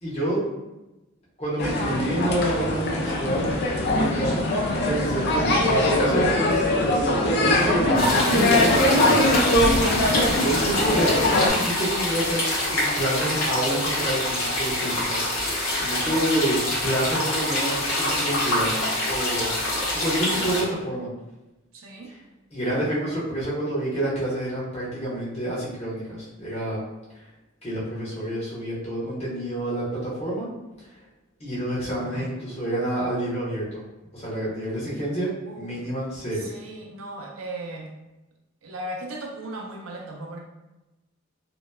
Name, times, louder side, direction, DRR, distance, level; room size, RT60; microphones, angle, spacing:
voice 1, 0.0-0.4 1.4-3.4 3.8-9.2 10.3-12.4 12.7-19.5 19.9-21.1 22.5-26.8 27.6-30.5 31.4-33.8 34.1-36.5, right 1 dB, 30° left, -8 dB, 1.0 m, -28 dB
sound 1, 1.6-11.5, left 1 dB, 50° left, 0.4 m, -22 dB
sound 2, 7.9-20.6, left 1 dB, 90° left, 0.8 m, -26 dB
voice 2, 21.7-22.1 31.9-32.4 35.4-35.9 36.3-37.9 38.6-40.4, right 1 dB, 70° right, 1 dB, 0.5 m, -38 dB
2.8 x 2.1 x 2.2 m, 1.0 s
head